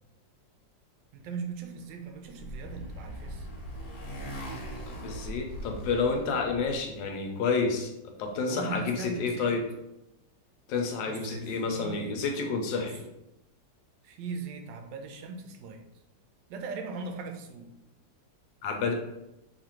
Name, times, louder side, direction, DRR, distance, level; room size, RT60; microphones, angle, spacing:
voice 1, 1.1-3.5 8.5-9.6 11.0-12.2 12.7-12.9 14.0-15.8 16.5-17.7, right 4 dB, 80° right, 5 dB, 1.2 m, -39 dB
Motorcycle, 1.9-6.9, equal, 60° left, 1.3 m, -40 dB
voice 2, 4.9-9.6 10.7-13.0 18.6-18.9, left 4 dB, 85° left, 4 dB, 1.3 m, -30 dB
3.3 x 2.5 x 4.3 m, 0.88 s
omnidirectional pair, 2.0 m